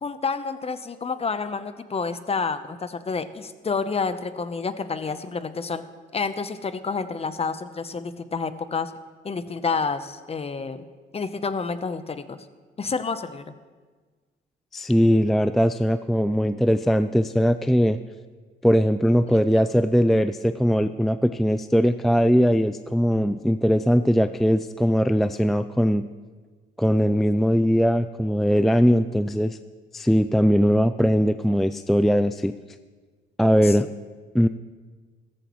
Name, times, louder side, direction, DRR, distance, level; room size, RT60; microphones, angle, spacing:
voice 1, 0.0-5.8 6.1-8.9 9.2-10.8 11.1-12.5 12.8-13.5 19.5-19.6 33.6-33.8, left 4 dB, 30° left, 11 dB, 0.8 m, -29 dB
voice 2, 14.7-18.0 18.6-26.1 26.8-29.6 29.9-32.5 33.4-33.9 34.3-34.5, equal, ahead, 11 dB, 0.3 m, -20 dB
15.5 x 14.0 x 3.1 m, 1.4 s
cardioid pair, 90°, 20 cm